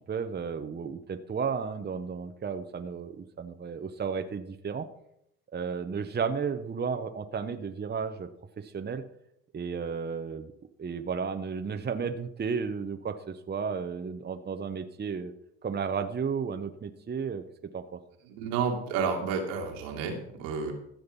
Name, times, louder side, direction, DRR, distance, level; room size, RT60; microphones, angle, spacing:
voice 1, 0.1-4.9 5.5-8.3 8.6-9.0 9.5-10.5 10.8-15.3 15.6-17.4 17.7-18.0, right 6 dB, 25° right, 8 dB, 1.0 m, -33 dB
voice 2, 18.2-20.7, right 5 dB, 85° right, 2 dB, 2.5 m, -31 dB
14.5 x 6.5 x 5.4 m, 0.76 s
hypercardioid pair, 70°, 36 cm